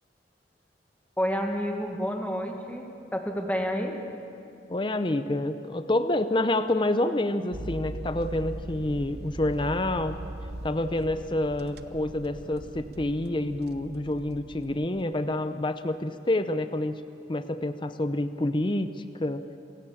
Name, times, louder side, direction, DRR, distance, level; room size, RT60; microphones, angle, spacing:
voice 1, 1.2-4.0, equal, 10° left, 2 dB, 1.6 m, -29 dB
voice 2, 4.7-10.2 10.6-17.0 17.3-18.9 19.2-19.4, left 1 dB, 25° left, 10 dB, 0.6 m, -28 dB
sound 1, 7.5-15.0, right 1 dB, 60° right, 0.9 m, -40 dB
27.5 x 17.0 x 7.1 m, 2.6 s
head